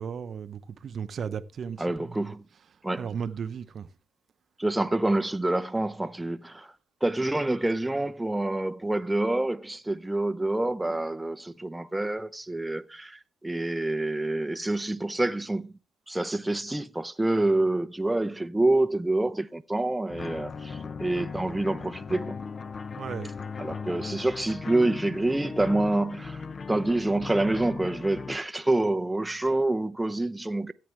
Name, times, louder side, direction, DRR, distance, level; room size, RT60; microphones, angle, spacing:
voice 1, 0.0-2.2 3.0-3.9 23.0-23.3, right 7 dB, 55° right, 0.7 m, -35 dB
voice 2, 1.8-2.4 2.8-3.1 4.6-6.7 7.0-15.7 16.1-22.4 23.6-30.7, right 2 dB, 10° right, 0.5 m, -27 dB
sound 1, 20.1-28.4, left 5 dB, 40° left, 0.6 m, -37 dB
14.0 x 8.5 x 3.2 m
cardioid pair, 90°, 0 cm